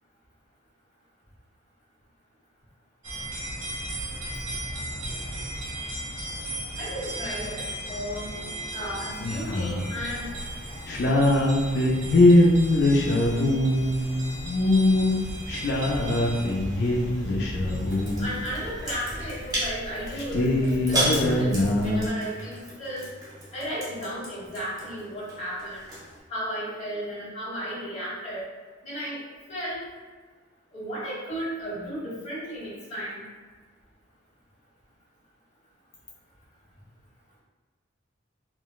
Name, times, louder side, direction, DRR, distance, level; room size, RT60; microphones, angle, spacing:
sound 1, 3.0-19.5, right 1 dB, 80° right, 1.1 m, -36 dB
voice 1, 6.8-8.3 8.7-10.3 18.2-23.0 23.5-25.8 26.3-28.5 28.8-29.2 29.5-29.8 30.7-33.2, equal, 35° left, -8 dB, 1.2 m, -34 dB
sound 2, 9.2-9.9 10.3-10.5 10.9-18.4 19.1-19.2 19.5-19.6 19.8-22.1, left 1 dB, 55° left, 0.4 m, -22 dB
sound 3, 17.9-26.2, equal, 20° right, 0.8 m, -34 dB
3.7 x 2.2 x 2.3 m, 1.4 s
head